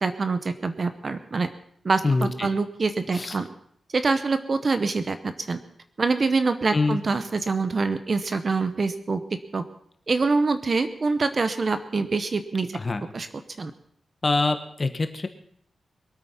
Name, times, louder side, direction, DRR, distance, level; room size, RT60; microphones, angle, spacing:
voice 1, 0.0-1.5 1.8-3.5 3.9-5.6 6.0-9.2 9.5-9.6 10.1-12.7 13.1-13.3 13.6-13.7, right 4 dB, 40° right, 10 dB, 0.9 m, -25 dB
voice 2, 2.0-2.5 3.1-3.4 6.7-7.0 12.7-13.0 14.2-15.3, left 3 dB, 30° left, 8 dB, 1.4 m, -24 dB
22.5 x 8.8 x 5.8 m, 0.66 s
wide cardioid pair, 125°, 0 cm